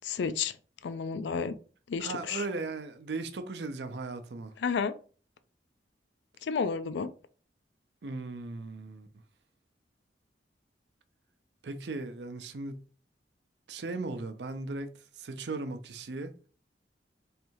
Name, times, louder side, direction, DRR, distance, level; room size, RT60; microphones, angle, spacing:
voice 1, 0.0-0.5 0.8-1.5 1.9-2.4 4.6-4.9 6.5-7.1, left 5 dB, 80° left, 0.4 m, -31 dB
voice 2, 2.0-4.5 8.0-9.1 11.6-12.8 13.7-14.9 15.2-16.3, right 3 dB, 70° right, 0.5 m, -37 dB
3.3 x 2.7 x 4.5 m
head